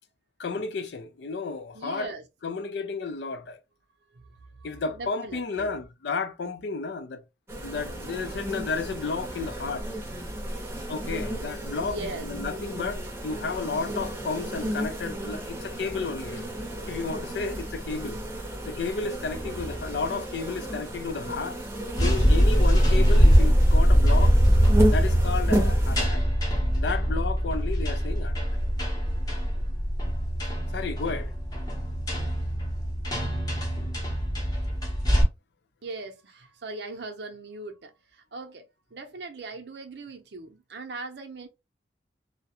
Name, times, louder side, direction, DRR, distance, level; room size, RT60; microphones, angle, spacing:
voice 1, 0.4-2.1 2.4-3.6 4.6-7.2 7.6-9.9 10.9-16.4 16.9-18.2 18.7-21.6 22.0-24.3 24.9-26.2 26.7-28.4 30.7-31.3, left 4 dB, 75° left, 0.4 m, -32 dB
voice 2, 1.7-2.2 4.3-4.4 4.9-5.7 11.8-12.3 35.8-38.6 38.9-41.5, right 3 dB, 70° right, 0.6 m, -39 dB
sound 1, 7.5-26.1, right 1 dB, 15° right, 0.6 m, -33 dB
sound 2, 22.0-35.2, equal, 20° left, 0.7 m, -22 dB
2.3 x 2.1 x 2.8 m
head